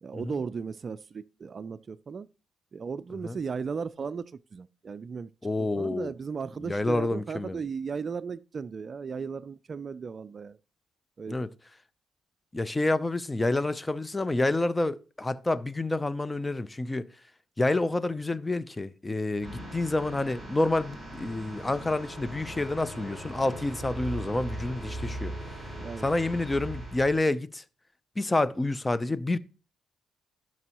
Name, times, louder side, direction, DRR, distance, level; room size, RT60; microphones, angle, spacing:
voice 1, 0.0-2.3 2.7-5.3 5.6-10.6 11.2-11.4 25.8-26.1, right 5 dB, 40° right, 0.4 m, -36 dB
voice 2, 5.4-6.1 6.6-7.6 11.3-11.5 12.5-17.1 17.6-25.3 26.0-27.6 28.2-29.4, left 2 dB, 15° left, 0.5 m, -28 dB
sound 1, 19.4-27.2, right 1 dB, ahead, 4.4 m, -39 dB
15.5 x 6.0 x 3.0 m
cardioid pair, 90°, 0 cm